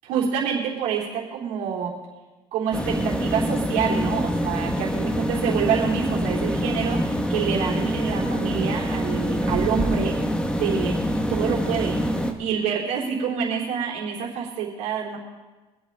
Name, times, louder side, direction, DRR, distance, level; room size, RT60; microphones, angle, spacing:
voice 1, 0.0-1.9 2.5-10.2 10.5-10.9 11.3-12.0 12.4-15.2, right 7 dB, 90° right, -3 dB, 3.6 m, -27 dB
sound 1, 2.7-12.3, equal, 10° left, 1.5 m, -25 dB
24.0 x 8.4 x 4.1 m, 1.2 s
cardioid pair, 95°, 12 cm